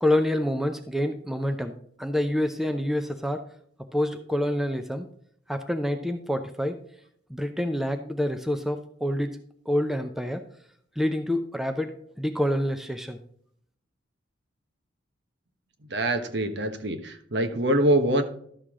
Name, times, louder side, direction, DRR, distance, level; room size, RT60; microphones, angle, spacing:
voice 1, 0.0-1.7 2.0-3.4 3.9-5.1 5.5-6.8 7.3-9.3 9.7-10.4 11.0-13.2, left 1 dB, ahead, 7 dB, 0.6 m, -27 dB
voice 2, 15.9-18.2, right 1 dB, 60° right, 7 dB, 1.2 m, -24 dB
12.5 x 6.6 x 3.7 m, 0.64 s
head